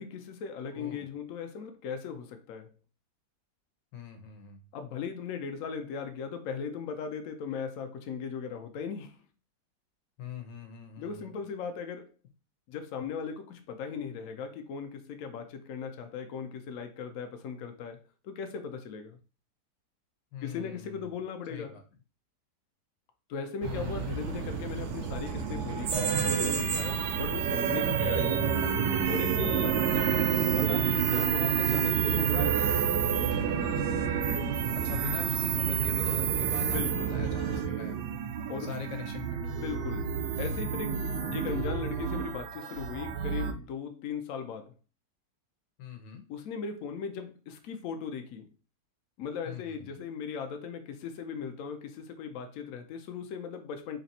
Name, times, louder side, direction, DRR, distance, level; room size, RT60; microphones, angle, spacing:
voice 1, 0.0-2.7 4.7-9.2 11.0-12.1 12.7-19.2 20.4-21.8 23.3-28.6 29.1-30.0 30.5-32.9 36.6-37.1 38.5-38.7 39.4-40.1 40.4-41.0 41.3-44.7 46.3-48.5 49.2-54.0, left 6 dB, 65° left, 0.9 m, -38 dB
voice 2, 0.7-1.1 3.9-4.6 10.2-11.3 20.3-21.1 21.5-21.8 23.6-24.3 34.7-38.0 38.6-39.4 41.2-41.4 45.8-46.2 49.4-49.9, left 7 dB, 85° left, 1.5 m, -43 dB
sound 1, 23.6-37.6, right 5 dB, 70° right, 0.7 m, -34 dB
sound 2, 25.9-43.5, right 8 dB, 85° right, 1.2 m, -29 dB
3.3 x 2.7 x 4.0 m
omnidirectional pair, 1.8 m